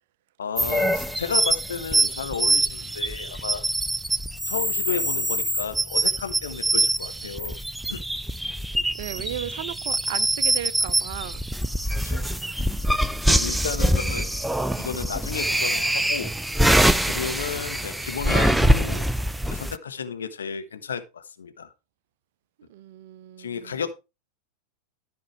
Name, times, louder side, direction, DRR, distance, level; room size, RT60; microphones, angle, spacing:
voice 1, 0.4-3.6 4.5-7.6 7.9-8.0 12.0-12.3 13.3-14.3 14.8-16.3 17.0-19.1 19.5-21.7 23.4-23.9, left 6 dB, 70° left, 1.3 m, -33 dB
sound 1, 0.6-19.8, right 1 dB, 5° right, 0.5 m, -24 dB
voice 2, 8.9-11.4 13.7-14.4 22.7-23.9, right 12 dB, 50° right, 0.7 m, -36 dB
13.5 x 5.4 x 4.7 m
figure-of-eight pair, 90°, 0 cm